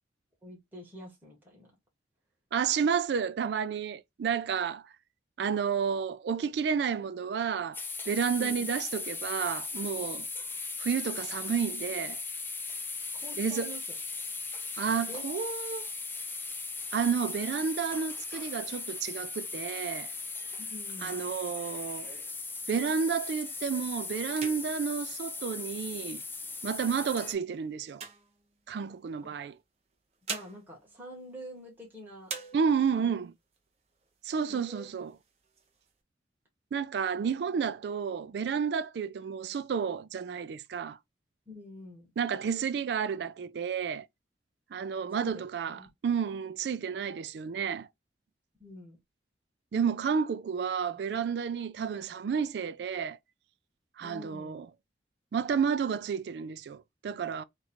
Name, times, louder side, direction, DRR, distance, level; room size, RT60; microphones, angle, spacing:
voice 1, 0.4-1.7 8.4-8.7 13.2-13.8 15.0-15.3 20.6-21.2 29.2-29.3 30.3-32.3 32.9-33.1 34.5-34.9 41.5-42.1 45.2-45.9 48.6-49.0 54.0-54.6, left 1 dB, 10° right, 1.3 m, -46 dB
voice 2, 2.5-4.8 5.4-10.3 10.8-12.2 13.4-13.7 14.8-15.9 16.9-20.1 21.0-22.1 22.7-26.2 26.6-28.0 28.7-29.5 32.5-33.3 34.2-35.1 36.7-41.0 42.2-44.1 44.7-47.9 49.7-53.2 54.0-54.7 55.3-57.4, right 6 dB, 65° right, 0.3 m, -31 dB
sound 1, 7.7-27.3, left 4 dB, 10° left, 0.5 m, -38 dB
sound 2, 22.0-23.2 23.7-23.9 24.2-26.2 26.8-29.0 29.9-31.9 32.2-33.1 33.5-33.6 33.9-34.6 35.0-35.9, right 5 dB, 35° right, 0.7 m, -45 dB
3.1 x 2.4 x 4.2 m
head